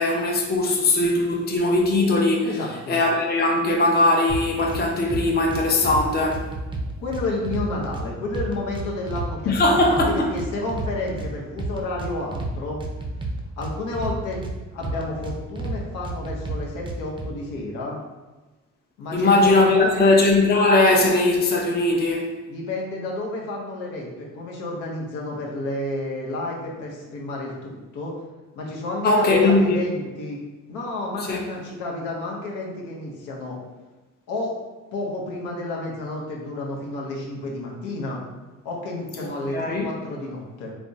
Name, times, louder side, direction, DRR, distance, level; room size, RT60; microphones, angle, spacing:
voice 1, 0.0-2.5 2.9-6.5 9.5-10.3 19.1-22.3 29.0-29.8 31.3-31.4 39.2-39.9, left 2 dB, 35° left, 0 dB, 0.5 m, -19 dB
voice 2, 2.4-3.0 7.0-9.5 9.9-12.8 13.6-14.4 14.7-18.0 19.0-20.0 22.5-28.1 28.5-30.4 30.7-33.6 34.3-34.5 34.9-38.2 38.6-40.7, left 2 dB, 90° left, -2 dB, 0.7 m, -31 dB
sound 1, 4.3-4.8 5.1-6.0 6.3-8.0 8.3-9.3 9.6-11.3 11.6-12.5 12.8-14.5 14.8-15.8 16.0-17.3, right 2 dB, 15° right, 0.4 m, -30 dB
3.4 x 2.0 x 2.6 m, 1.2 s
cardioid pair, 90°, 30 cm